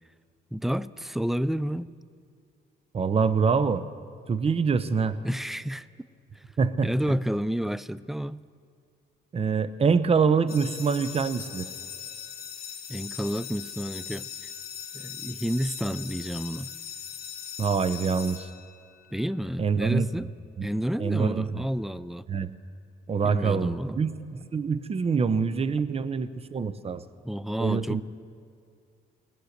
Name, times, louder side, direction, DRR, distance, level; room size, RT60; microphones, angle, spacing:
voice 1, 0.5-1.9 5.2-5.9 6.4-6.5 6.8-8.4 12.9-14.3 14.9-16.7 19.1-20.3 20.6-22.2 23.2-24.0 27.2-28.0, equal, ahead, 18 dB, 0.3 m, -30 dB
voice 2, 2.9-3.8 4.3-5.2 6.6-7.2 9.3-11.7 17.6-18.5 19.6-20.3 20.6-20.7 21.0-21.6 22.3-22.5 23.1-24.1 24.5-27.0 27.6-28.0, right 5 dB, 30° right, 14 dB, 0.6 m, -25 dB
sound 1, 10.5-19.1, left 8 dB, 50° left, 1.3 m, -40 dB
19.0 x 9.2 x 6.6 m, 2.4 s
cardioid pair, 90°, 20 cm